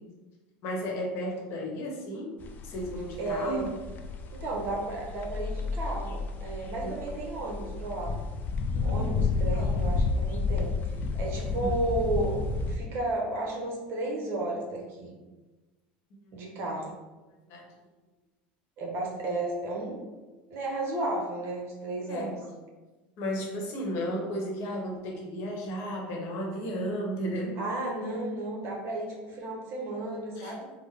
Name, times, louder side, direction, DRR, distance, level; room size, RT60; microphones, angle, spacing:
voice 1, 0.6-2.3 2.6-3.7 6.8-6.9 8.7-9.7 11.6-11.7 16.3-16.4 17.5-17.7 22.0-22.4 23.2-27.6 30.4-30.6, equal, 60° left, 0 dB, 0.9 m, -34 dB
sound 1, 2.4-12.8, left 3 dB, 35° left, 0.4 m, -31 dB
voice 2, 3.2-3.8 4.3-8.1 8.8-10.8 11.1-12.3 12.7-15.1 16.3-16.9 18.8-20.1 20.5-22.4 27.6-30.7, right 2 dB, 50° right, -2 dB, 0.8 m, -33 dB
3.7 x 2.0 x 3.2 m, 1.2 s
supercardioid pair, 110°, 5 cm